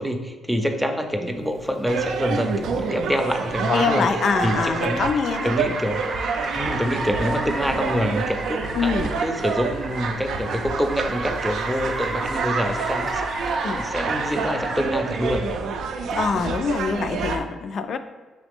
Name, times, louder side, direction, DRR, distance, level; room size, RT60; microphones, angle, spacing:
voice 1, 0.0-4.1 4.4-5.1 5.4-6.0 6.5-15.4, equal, ahead, 4 dB, 0.5 m, -26 dB
Car, 1.6-15.5, right 2 dB, 40° right, 0.6 m, -33 dB
sound 1, 1.9-17.4, right 5 dB, 80° right, 0.3 m, -28 dB
voice 2, 3.7-5.5 8.7-9.1 13.6-13.8 16.1-18.0, left 5 dB, 60° left, 9 dB, 0.3 m, -24 dB
4.0 x 3.2 x 3.5 m, 1.3 s
cardioid pair, 90°, 0 cm